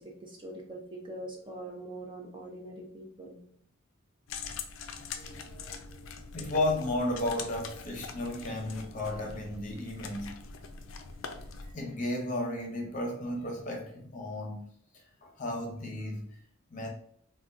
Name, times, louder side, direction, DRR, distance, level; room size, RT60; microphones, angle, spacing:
voice 1, 0.0-3.4 5.1-6.1 8.4-8.6 11.6-11.7, right 1 dB, 25° right, 0.5 m, -44 dB
sound 1, 4.3-11.7, left 5 dB, 70° left, 0.4 m, -43 dB
voice 2, 6.3-10.4 11.7-16.4 16.7-16.9, left 1 dB, 40° left, 0.7 m, -34 dB
3.6 x 2.2 x 2.5 m
head